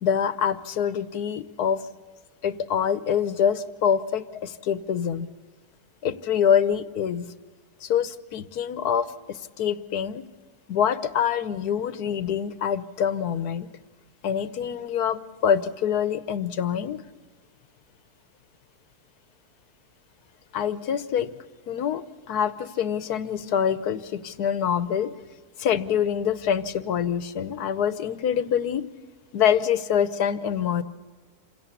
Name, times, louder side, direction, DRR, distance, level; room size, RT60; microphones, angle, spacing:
voice 1, 0.0-1.8 2.4-5.3 6.0-7.3 7.8-10.2 10.7-13.7 14.2-17.0 20.5-21.3 21.7-25.1 25.6-28.8 29.3-30.8, left 8 dB, 85° left, 13 dB, 1.5 m, -25 dB
27.0 x 17.0 x 8.4 m, 1.4 s
omnidirectional pair, 1.6 m